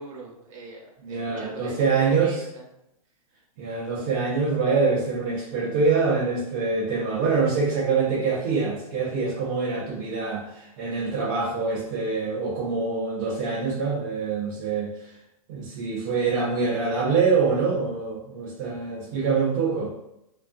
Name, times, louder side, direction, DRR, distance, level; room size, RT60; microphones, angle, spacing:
voice 1, 0.0-1.7 2.0-2.6, right 3 dB, 60° right, -1 dB, 0.8 m, -42 dB
voice 2, 1.0-2.4 3.6-15.1 15.5-19.9, right 4 dB, 30° right, -6 dB, 0.4 m, -25 dB
2.3 x 2.2 x 2.4 m, 0.82 s
supercardioid pair, 170°, 19 cm